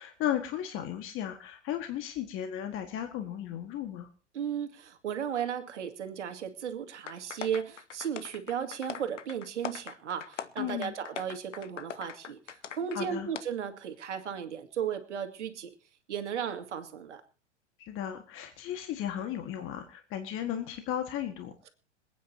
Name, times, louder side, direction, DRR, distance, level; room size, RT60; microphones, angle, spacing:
voice 1, 0.0-4.1 10.6-10.9 12.9-13.3 17.8-21.7, left 10 dB, 35° left, 6 dB, 1.7 m, -35 dB
voice 2, 4.3-15.7 16.1-17.2, right 8 dB, 75° right, 8 dB, 2.2 m, -35 dB
sound 1, 7.1-13.0 13.3-13.4, left 7 dB, 85° left, 1.1 m, -41 dB
26.5 x 9.3 x 2.8 m, 0.37 s
hypercardioid pair, 105°, 35 cm